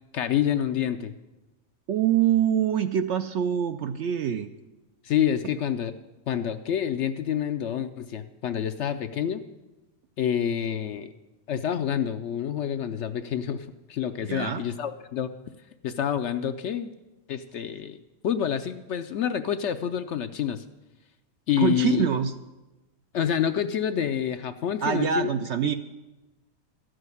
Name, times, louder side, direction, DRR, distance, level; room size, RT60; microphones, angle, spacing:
voice 1, 0.1-1.1 5.0-5.9 6.3-9.4 10.2-11.1 11.5-15.3 15.8-16.9 17.3-20.6 21.5-22.1 23.1-25.3, left 9 dB, 65° left, 10 dB, 0.8 m, -28 dB
voice 2, 1.9-4.5 14.3-14.6 21.6-22.3 24.8-25.7, right 9 dB, 65° right, 9 dB, 0.7 m, -24 dB
13.0 x 6.3 x 9.5 m, 1.1 s
omnidirectional pair, 1.5 m